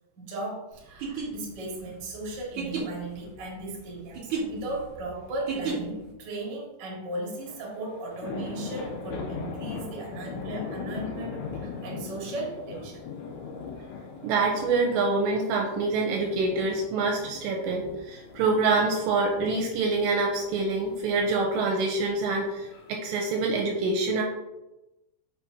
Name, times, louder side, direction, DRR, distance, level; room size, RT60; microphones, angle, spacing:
voice 1, 0.2-13.1, right 2 dB, 65° right, -4 dB, 1.0 m, -36 dB
sound 1, 0.9-6.1, right 5 dB, 45° right, 1.7 m, -34 dB
sound 2, 7.3-23.6, left 5 dB, 80° left, 3.1 m, -40 dB
voice 2, 14.2-24.2, right 3 dB, 85° right, 1 dB, 2.6 m, -26 dB
6.9 x 6.0 x 2.9 m, 1.0 s
omnidirectional pair, 5.6 m